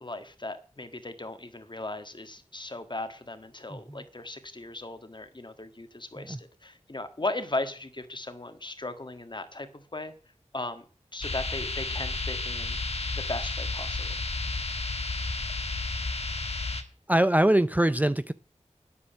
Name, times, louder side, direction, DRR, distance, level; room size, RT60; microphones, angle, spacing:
voice 1, 0.0-10.1 10.5-10.8 11.1-12.8 13.1-14.2, left 2 dB, 40° left, 1.6 m, -37 dB
voice 2, 3.7-4.0 6.2-6.4 17.1-18.3, right 1 dB, 15° right, 0.5 m, -23 dB
sound 1, 11.2-16.8, left 3 dB, 55° left, 1.6 m, -32 dB
9.7 x 8.6 x 7.1 m
wide cardioid pair, 65°, 12 cm